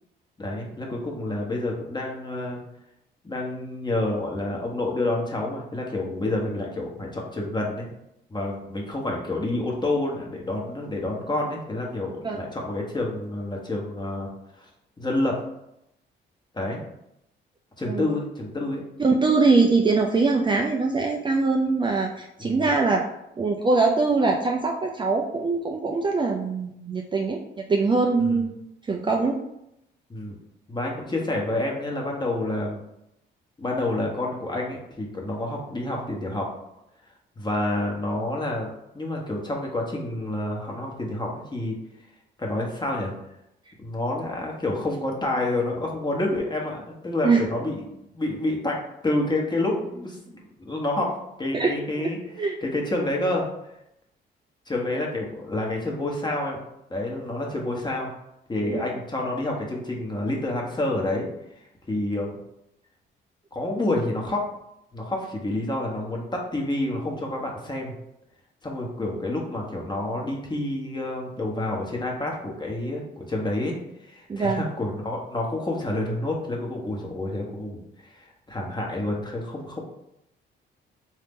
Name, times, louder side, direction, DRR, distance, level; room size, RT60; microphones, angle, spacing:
voice 1, 0.4-2.6 3.2-7.9 8.3-14.3 14.6-14.7 15.0-15.4 16.5-16.8 17.8-18.8 22.4-22.7 28.2-28.5 30.1-30.3 30.7-32.8 33.6-36.5 37.4-41.8 42.4-43.1 43.8-53.5 54.7-56.6 56.9-58.1 58.5-62.4 63.5-64.5 64.9-67.9 68.6-73.7 74.0-79.8, left 2 dB, 20° left, -1 dB, 1.1 m, -28 dB
voice 2, 19.0-23.0 23.4-28.6 28.9-29.4 47.2-47.4 51.5-51.7 52.4-52.6 58.6-58.9 74.3-74.6, right 3 dB, 25° right, 0 dB, 0.4 m, -22 dB
4.0 x 2.7 x 3.6 m, 0.82 s
cardioid pair, 90°, 20 cm